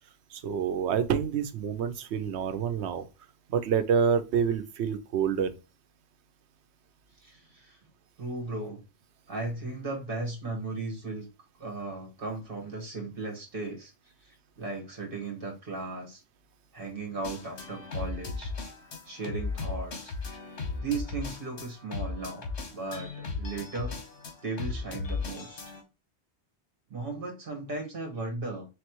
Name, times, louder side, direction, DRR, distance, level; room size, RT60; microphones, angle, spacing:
voice 1, 0.3-3.1 3.5-5.5, right 7 dB, 85° right, 0.9 m, -27 dB
voice 2, 7.2-7.8 8.2-8.8 9.3-11.3 11.6-13.9 14.2-16.2 16.7-18.5 19.0-20.1 20.8-24.0 24.4-25.6 26.9-28.7, right 3 dB, 55° right, 1.6 m, -36 dB
sound 1, 17.2-25.8, left 4 dB, 80° left, 1.3 m, -36 dB
4.2 x 3.2 x 2.9 m
omnidirectional pair, 1.1 m